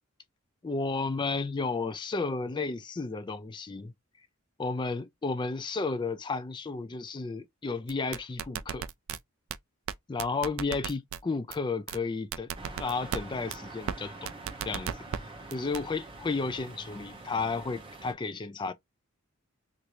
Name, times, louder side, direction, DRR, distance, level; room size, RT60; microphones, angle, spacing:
voice 1, 0.6-3.9 4.6-8.8 10.1-12.5 12.8-14.3 14.7-15.0 15.5-18.7, left 4 dB, 20° left, 0.3 m, -32 dB
sound 1, 7.9-9.2 9.5-9.6 9.9-10.0 10.2-11.2 11.5-11.6 11.9-12.0 12.3-13.2 13.5-13.6 13.9-14.0 14.3-15.2 15.5-15.8, right 8 dB, 65° right, 0.3 m, -34 dB
sound 2, 12.5-18.1, right 2 dB, 25° right, 0.8 m, -45 dB
3.0 x 2.5 x 3.0 m
head